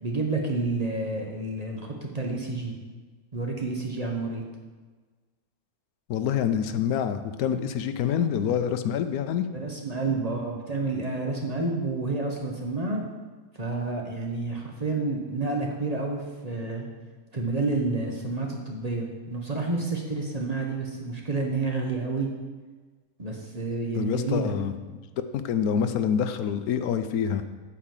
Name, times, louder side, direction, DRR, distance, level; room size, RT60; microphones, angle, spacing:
voice 1, 0.0-2.7 3.3-4.4 9.5-13.0 13.6-16.9 17.3-22.3 23.2-24.5, right 3 dB, 30° right, 0 dB, 1.1 m, -29 dB
voice 2, 6.1-9.5 23.9-24.8 25.3-27.4, left 8 dB, 80° left, 10 dB, 1.1 m, -26 dB
8.6 x 4.9 x 7.3 m, 1.3 s
omnidirectional pair, 1.5 m